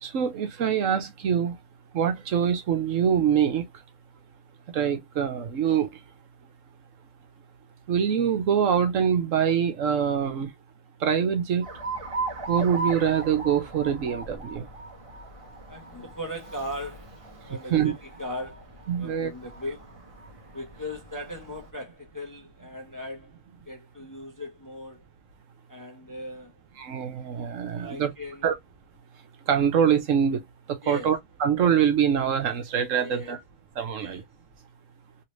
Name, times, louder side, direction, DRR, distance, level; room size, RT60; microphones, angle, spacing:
voice 1, 0.0-1.6 1.9-3.7 4.7-5.9 7.9-10.5 11.0-11.6 12.5-14.7 17.7-17.9 18.9-19.3 26.8-28.1 28.4-28.5 29.5-30.4 30.7-33.4 33.8-34.2, right 8 dB, 75° right, 1.2 m, -24 dB
Alarm, 11.6-21.7, right 3 dB, 30° right, 1.0 m, -38 dB
voice 2, 15.7-17.2 17.4-19.9 20.5-23.4 23.7-25.0 25.7-26.5 27.7-28.5 30.8-31.1 33.0-33.4 34.0-34.2, left 1 dB, 20° left, 0.6 m, -38 dB
3.1 x 2.7 x 3.1 m
omnidirectional pair, 1.4 m